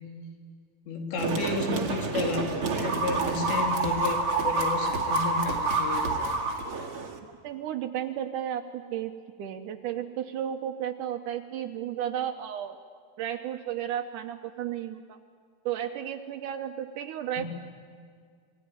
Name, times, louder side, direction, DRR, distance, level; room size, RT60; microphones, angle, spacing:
voice 1, 0.9-6.4 17.4-17.5, left 4 dB, 80° left, 2 dB, 4.9 m, -32 dB
sound 1, 1.2-7.2, right 3 dB, 40° right, 2.1 m, -28 dB
voice 2, 7.4-9.1 9.4-12.8 13.2-15.2 15.6-17.4, right 10 dB, 90° right, 5 dB, 1.8 m, -33 dB
28.0 x 21.0 x 9.8 m, 2.1 s
omnidirectional pair, 5.0 m